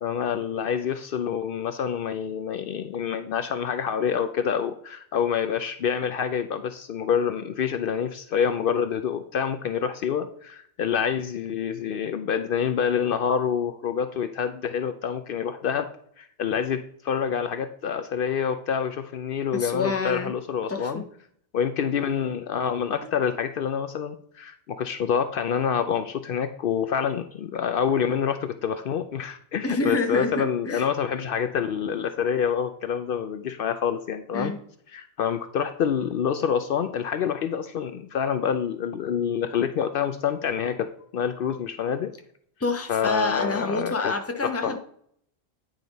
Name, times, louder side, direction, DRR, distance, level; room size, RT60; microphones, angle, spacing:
voice 1, 0.0-15.9 16.2-21.0 21.5-34.5 34.9-42.1 42.9-44.1 44.4-44.8, left 7 dB, 65° left, 9 dB, 0.7 m, -27 dB
voice 2, 19.5-20.3 20.7-21.1 29.6-30.8 34.3-34.6 41.5-41.6 42.6-44.8, left 3 dB, 15° left, 5 dB, 0.7 m, -28 dB
9.3 x 5.1 x 4.0 m, 0.65 s
omnidirectional pair, 1.0 m